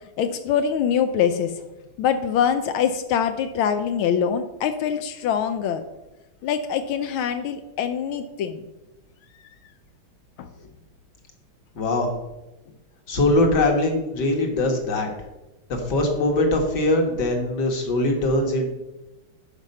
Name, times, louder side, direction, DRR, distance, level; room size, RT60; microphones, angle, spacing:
voice 1, 0.0-1.5 2.0-5.8 6.4-8.7 10.4-10.5, left 8 dB, 90° left, 8 dB, 1.5 m, -24 dB
voice 2, 11.8-12.1 13.1-15.1 15.7-18.7, left 2 dB, 55° left, 3 dB, 2.1 m, -22 dB
12.0 x 5.2 x 5.4 m, 1.0 s
omnidirectional pair, 2.2 m